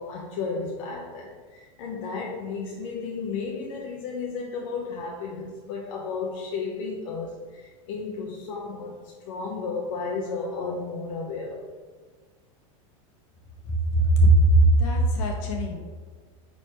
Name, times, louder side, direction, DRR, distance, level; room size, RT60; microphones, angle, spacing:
voice 1, 0.0-11.7, left 4 dB, 70° left, -2 dB, 1.0 m, -33 dB
voice 2, 13.9-15.8, right 2 dB, 55° left, 0 dB, 1.6 m, -19 dB
9.2 x 4.2 x 3.2 m, 1.4 s
supercardioid pair, 150°, 17 cm